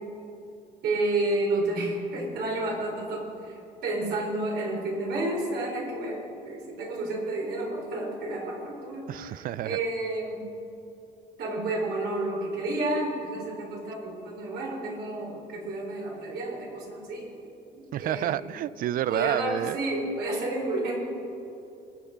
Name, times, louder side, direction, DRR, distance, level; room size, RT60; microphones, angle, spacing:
voice 1, 0.8-10.4 11.4-17.4 17.7-18.4 19.1-20.9, right 2 dB, 75° right, -1 dB, 4.1 m, -31 dB
voice 2, 9.1-9.8 17.9-19.8, right 12 dB, 55° right, 19 dB, 0.4 m, -29 dB
22.0 x 8.6 x 5.1 m, 2.9 s
cardioid pair, 110°, 17 cm